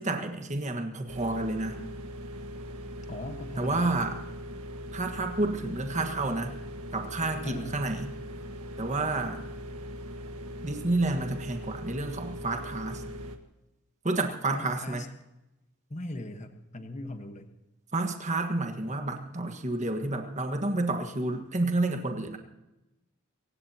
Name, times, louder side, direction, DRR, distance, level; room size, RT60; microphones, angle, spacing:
voice 1, 0.0-1.8 3.6-4.2 4.9-6.5 6.9-8.1 8.8-9.4 10.6-13.0 14.0-15.0 17.9-22.4, right 2 dB, 30° right, 5 dB, 1.5 m, -30 dB
sound 1, 1.1-13.4, equal, 90° right, 1.6 m, -40 dB
voice 2, 3.1-4.0 7.4-7.9 14.5-15.1 15.9-17.5, left 1 dB, 30° left, 6 dB, 1.3 m, -39 dB
27.0 x 16.0 x 2.9 m, 0.97 s
head